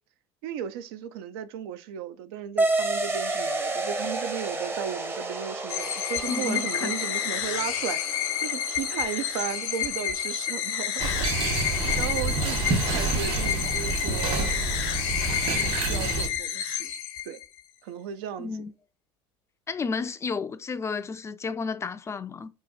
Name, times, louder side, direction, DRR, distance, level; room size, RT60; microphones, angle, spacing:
voice 1, 0.4-11.1 11.4-11.6 12.0-14.6 15.4-16.9 17.2-17.4 17.8-18.5, right 9 dB, 75° right, 0.5 m, -35 dB
sound 1, 2.6-11.6, right 2 dB, 20° right, 0.7 m, -32 dB
sound 2, 5.7-17.6, left 10 dB, 70° left, 0.7 m, -30 dB
voice 2, 6.3-6.9 18.4-18.7 19.7-22.5, left 5 dB, 20° left, 0.3 m, -32 dB
sound 3, 11.0-16.3, right 3 dB, 45° right, 1.4 m, -28 dB
3.0 x 2.4 x 4.0 m
supercardioid pair, 90°, 13 cm